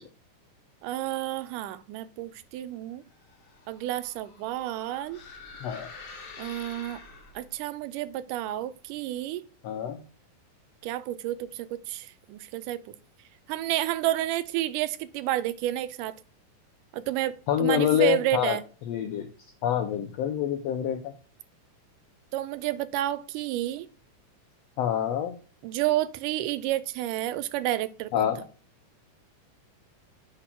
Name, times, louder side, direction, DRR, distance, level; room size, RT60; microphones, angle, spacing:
voice 1, 0.8-3.0 3.7-5.2 6.4-7.0 7.4-9.4 10.8-12.8 13.5-16.1 16.9-18.6 22.3-23.9 25.6-28.3, right 14 dB, 85° right, 2.1 m, -30 dB
sound 1, 3.1-7.6, left 4 dB, 55° left, 2.3 m, -47 dB
voice 2, 5.6-5.9 9.6-10.0 17.5-18.6 18.9-19.3 19.6-21.1 24.8-25.4 28.1-28.4, left 10 dB, 90° left, 1.4 m, -26 dB
7.8 x 4.1 x 4.3 m
omnidirectional pair, 3.7 m